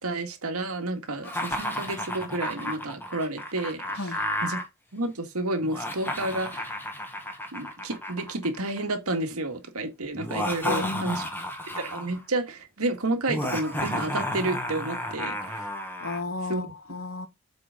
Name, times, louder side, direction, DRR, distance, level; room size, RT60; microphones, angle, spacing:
voice 1, 0.0-3.8 4.4-4.6 4.9-6.8 7.5-11.2 11.8-15.7 16.5-16.6, right 2 dB, 80° right, 1.9 m, -30 dB
Laughter, 1.2-4.6 5.6-8.9 10.2-12.2 13.3-16.2, left 1 dB, 10° left, 1.4 m, -32 dB
voice 2, 10.6-11.5 16.0-17.3, left 3 dB, 65° left, 1.3 m, -34 dB
7.9 x 5.1 x 3.7 m
head